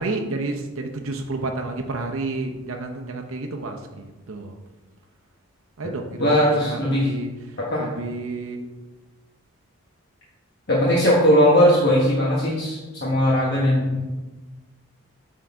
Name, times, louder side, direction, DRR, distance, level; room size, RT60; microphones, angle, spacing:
voice 1, 0.0-4.6 5.8-6.3 6.6-8.7, right 3 dB, 70° right, 3 dB, 0.7 m, -30 dB
voice 2, 6.2-7.1 7.6-7.9 10.7-14.0, equal, 50° left, -5 dB, 1.1 m, -19 dB
7.8 x 3.8 x 4.6 m, 1.2 s
head